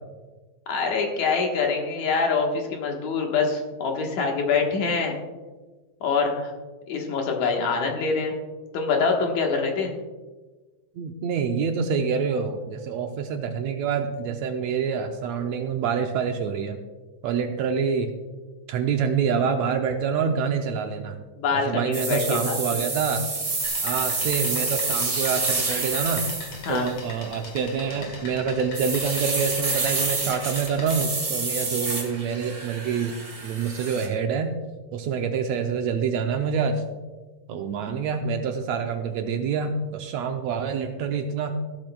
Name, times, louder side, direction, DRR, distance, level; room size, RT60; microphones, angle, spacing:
voice 1, 0.7-5.1 6.0-6.5 6.9-8.3 8.7-9.9 21.4-22.8 26.7-26.9, left 4 dB, 75° left, 1 dB, 2.8 m, -25 dB
voice 2, 11.0-16.8 17.2-18.1 18.7-21.2 21.5-23.2 23.8-26.3 26.7-33.2 33.4-34.5 34.9-36.8 37.5-41.5, right 6 dB, 75° right, 5 dB, 1.8 m, -26 dB
sound 1, 21.9-26.9 27.9-28.2 28.7-34.1, right 3 dB, 25° right, 1.7 m, -28 dB
sound 2, 23.6-31.0, left 3 dB, 55° left, 2.6 m, -41 dB
15.5 x 12.0 x 2.3 m, 1.3 s
omnidirectional pair, 3.4 m